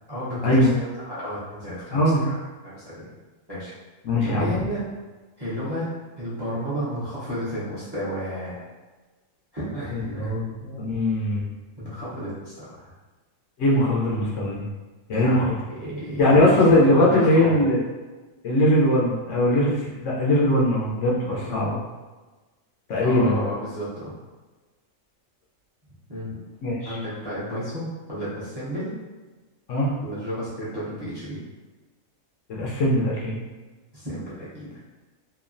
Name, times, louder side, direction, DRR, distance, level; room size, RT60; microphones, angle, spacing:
voice 1, 0.1-2.4 2.6-3.1 3.5-3.7 4.2-4.8 5.4-5.9 6.2-8.6 9.5-10.3 11.8-12.9 15.1-16.6 16.9-17.7 21.5-21.8 23.0-24.1 26.1-26.3 26.8-28.9 30.0-31.4 33.9-34.9, equal, 25° right, -10 dB, 0.7 m, -32 dB
voice 2, 1.9-2.3 4.0-4.5 9.9-11.4 13.6-14.6 15.1-15.5 16.2-17.8 18.4-21.8 22.9-23.4 26.6-27.0 29.7-29.9 32.5-33.4, left 1 dB, 70° left, -3 dB, 0.9 m, -20 dB
3.0 x 2.3 x 2.5 m, 1.3 s
omnidirectional pair, 1.4 m